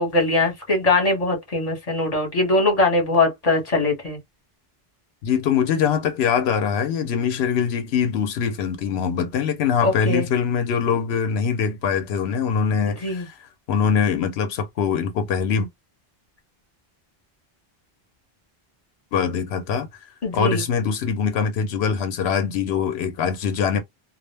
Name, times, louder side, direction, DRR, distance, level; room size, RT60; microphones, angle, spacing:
voice 1, 0.0-4.2 9.8-10.3 13.0-13.2 20.2-20.6, left 2 dB, 40° left, 1.1 m, -21 dB
voice 2, 5.2-15.7 19.1-19.9 20.3-23.8, left 7 dB, 90° left, 0.8 m, -23 dB
2.3 x 2.0 x 3.1 m
omnidirectional pair, 1.0 m